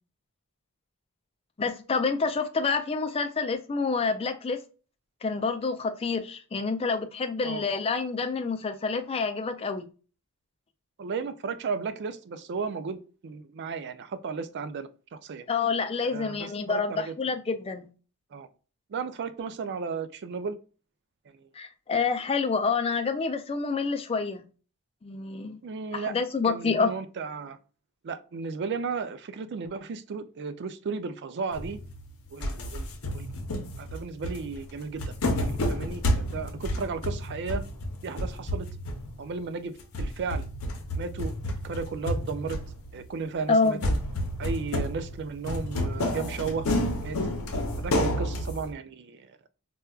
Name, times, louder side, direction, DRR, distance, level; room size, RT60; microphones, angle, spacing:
voice 1, 1.6-4.6 5.2-9.8 15.5-17.9 21.6-24.5 25.0-25.6 25.9-26.9 43.5-43.9, left 4 dB, 25° left, 8 dB, 0.3 m, -28 dB
voice 2, 11.0-15.4 16.0-17.1 18.3-18.5 18.9-20.6 25.6-26.2 26.4-27.6 28.0-31.8 32.3-32.9 33.1-33.3 33.8-37.6 38.0-38.7 39.2-40.5 40.9-41.3 41.6-42.6 42.9-44.0 44.4-46.7 47.0-47.2 47.8-49.4, right 5 dB, 50° right, 11 dB, 0.4 m, -34 dB
sound 1, 31.5-32.1 32.4-39.4 39.8-43.1 43.8-48.7, left 1 dB, 70° left, 0.7 m, -30 dB
4.2 x 2.3 x 2.3 m, 0.36 s
head